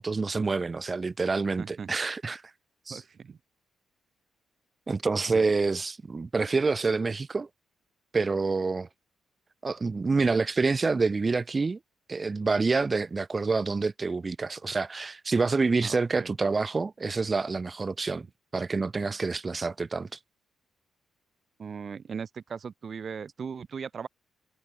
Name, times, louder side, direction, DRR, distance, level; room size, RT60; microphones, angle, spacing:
voice 1, 0.0-2.4 2.9-3.0 4.9-7.5 8.1-8.9 9.6-11.8 12.1-18.3 18.5-20.2, right 4 dB, 25° right, 0.3 m, -27 dB
voice 2, 1.6-1.9 2.9-3.4 5.3-5.4 15.8-16.3 21.6-24.1, right 6 dB, 40° right, 1.7 m, -38 dB
cardioid pair, 150°, 0 cm